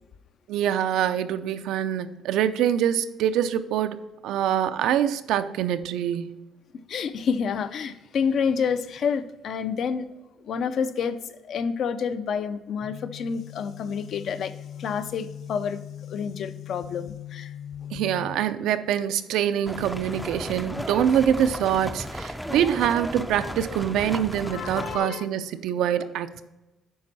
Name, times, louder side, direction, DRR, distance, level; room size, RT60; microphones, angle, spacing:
voice 1, 0.5-4.0 4.2-6.4 17.9-26.4, right 10 dB, 80° right, 0.5 m, -25 dB
voice 2, 6.9-10.1 10.4-15.8 16.1-17.5 17.8-17.9 24.4-25.3, left 6 dB, 50° left, 0.5 m, -29 dB
sound 1, 12.8-18.4, left 11 dB, 35° left, 0.9 m, -40 dB
sound 2, 19.7-25.0, equal, ahead, 0.4 m, -35 dB
8.6 x 5.3 x 4.1 m
cardioid pair, 150°, 0 cm